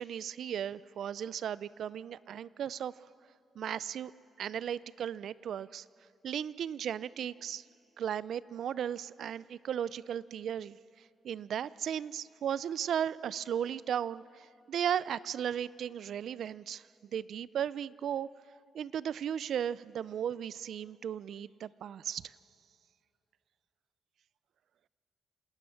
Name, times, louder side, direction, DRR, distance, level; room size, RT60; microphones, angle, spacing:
voice 1, 0.0-2.9 3.6-4.1 4.4-5.8 6.2-7.6 8.0-10.8 11.2-16.8 17.1-18.3 18.7-22.3, right 9 dB, 70° right, 19 dB, 0.4 m, -36 dB
27.5 x 17.5 x 6.4 m, 2.7 s
cardioid pair, 105°, 0 cm